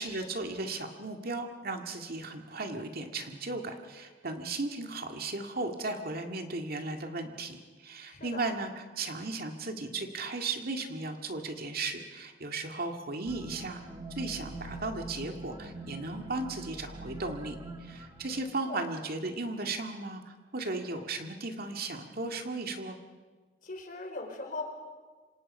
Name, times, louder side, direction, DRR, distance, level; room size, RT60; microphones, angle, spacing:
voice 1, 0.0-13.8 14.1-23.0, right 3 dB, 55° right, 4 dB, 2.1 m, -36 dB
voice 2, 8.0-8.4 18.2-18.8 23.6-24.6, left 3 dB, 50° left, 3 dB, 4.3 m, -40 dB
sound 1, 13.3-18.5, right 2 dB, 20° right, 1.6 m, -44 dB
27.5 x 26.0 x 5.5 m, 1.4 s
head